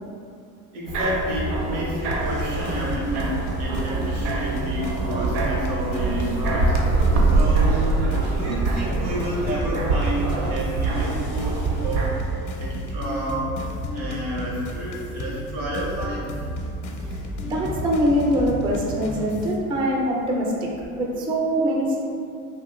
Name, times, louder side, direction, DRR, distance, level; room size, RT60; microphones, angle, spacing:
voice 1, 0.7-6.7 7.2-12.1 12.6-13.5 13.9-16.3, equal, 85° right, -5 dB, 1.1 m, -30 dB
sound 1, 0.9-12.1, right 3 dB, 65° right, 0.7 m, -24 dB
sound 2, 2.1-19.6, equal, 45° left, 0.5 m, -32 dB
voice 2, 17.4-20.7 21.0-22.0, equal, 15° right, -2 dB, 0.3 m, -23 dB
3.2 x 2.3 x 2.9 m, 2.4 s
supercardioid pair, 90°, 44 cm